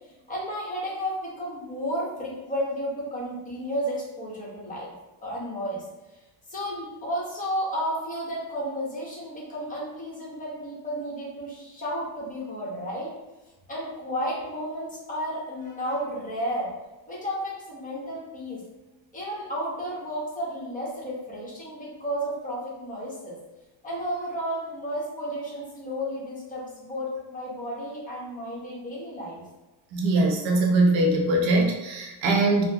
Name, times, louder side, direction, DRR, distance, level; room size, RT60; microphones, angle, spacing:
voice 1, 0.3-4.9 5.2-5.8 6.5-13.1 13.7-16.7 17.1-18.6 19.1-23.4 23.8-29.4, equal, 15° left, -6 dB, 1.0 m, -32 dB
voice 2, 29.9-32.6, right 2 dB, 70° right, 1 dB, 0.8 m, -22 dB
3.9 x 2.1 x 2.8 m, 1.0 s
cardioid pair, 145°, 48 cm